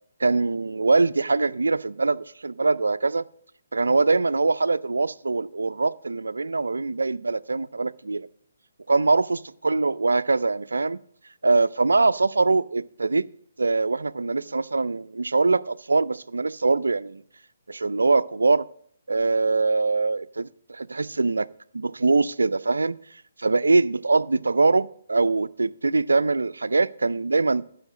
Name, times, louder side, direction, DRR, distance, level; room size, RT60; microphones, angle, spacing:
voice 1, 0.2-3.3 3.7-8.3 8.9-11.0 11.4-13.3 13.6-17.2 17.7-18.7 19.1-21.5 21.7-23.0 23.4-27.8, right 3 dB, 85° right, 0.4 m, -23 dB
11.5 x 5.0 x 7.3 m
hypercardioid pair, 145°, 0 cm